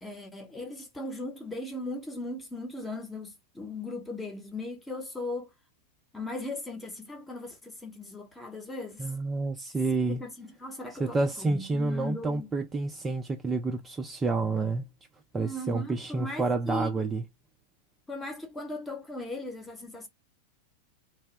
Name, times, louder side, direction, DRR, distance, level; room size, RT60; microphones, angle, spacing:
voice 1, 0.0-5.5 6.1-9.1 10.1-12.5 15.4-16.9 18.1-20.1, left 2 dB, 10° left, 0.9 m, -38 dB
voice 2, 9.0-10.2 11.0-14.8 15.3-17.2, right 3 dB, 15° right, 0.5 m, -29 dB
2.6 x 2.1 x 3.2 m
figure-of-eight pair, 90°, 0 cm